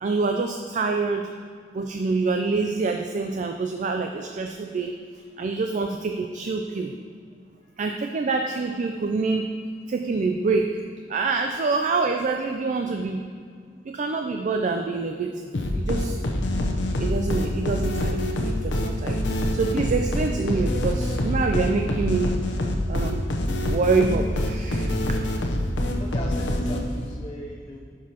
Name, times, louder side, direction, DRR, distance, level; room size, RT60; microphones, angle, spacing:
voice 1, 0.0-1.3 1.7-4.9 5.4-6.9 7.8-9.5 9.9-10.8 11.1-13.2 13.9-16.2 17.0-22.4 22.9-23.2 23.7-24.9, right 4 dB, 45° right, 4 dB, 0.4 m, -26 dB
sound 1, 15.5-27.1, left 1 dB, 75° left, 0.8 m, -26 dB
voice 2, 26.0-27.8, left 1 dB, 25° left, -2 dB, 0.6 m, -38 dB
11.0 x 6.1 x 2.9 m, 2.1 s
head